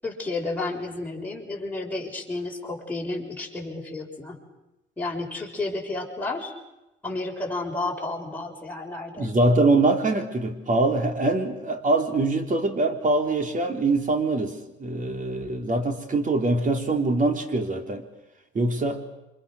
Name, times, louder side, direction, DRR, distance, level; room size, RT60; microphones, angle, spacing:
voice 1, 0.0-4.4 5.0-6.5 7.0-9.3, left 2 dB, 10° left, -2 dB, 6.7 m, -31 dB
voice 2, 9.2-18.1 18.5-19.0, right 2 dB, 40° right, 5 dB, 4.0 m, -23 dB
27.5 x 25.5 x 6.6 m, 0.96 s
cardioid pair, 90°, 20 cm